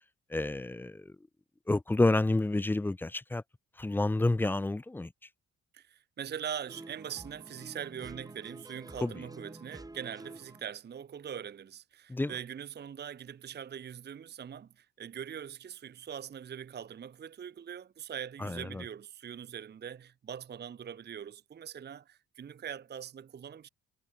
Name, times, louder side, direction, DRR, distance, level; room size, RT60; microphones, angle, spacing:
voice 1, 0.3-1.1 1.7-3.4 3.8-5.1 9.0-9.1 12.1-12.3 18.4-18.8, left 2 dB, 5° left, 0.4 m, -29 dB
voice 2, 5.7-23.7, right 8 dB, 35° right, 0.7 m, -42 dB
sound 1, 6.7-10.6, right 2 dB, 10° right, 2.4 m, -49 dB
cardioid pair, 90°, 30 cm